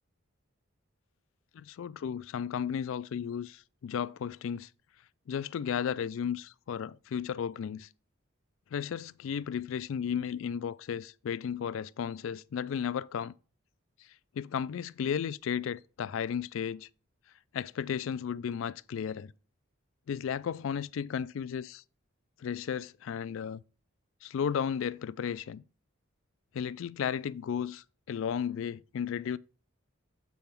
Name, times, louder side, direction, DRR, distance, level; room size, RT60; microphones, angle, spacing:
voice 1, 1.5-4.7 5.3-7.9 8.7-13.3 14.4-16.9 17.5-19.3 20.1-21.8 22.4-23.6 24.2-25.6 26.5-29.4, left 7 dB, 65° left, 0.3 m, -34 dB
7.7 x 3.5 x 5.8 m
head